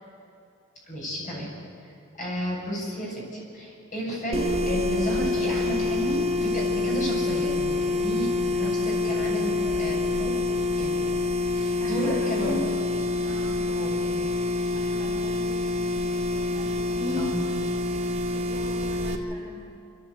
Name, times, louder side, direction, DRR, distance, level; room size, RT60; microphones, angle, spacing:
voice 1, 0.9-1.6 1.8-10.4 10.8-11.0 11.5-12.5 13.7-14.1 17.2-17.4, equal, 40° left, -3 dB, 7.1 m, -32 dB
sound 1, 4.3-19.2, left 2 dB, 30° right, 1.2 m, -26 dB
voice 2, 11.8-12.7 13.2-13.5 14.7-15.7 16.4-17.3 18.3-19.6, left 2 dB, 15° left, -7 dB, 3.5 m, -37 dB
26.5 x 13.5 x 8.1 m, 2.5 s
head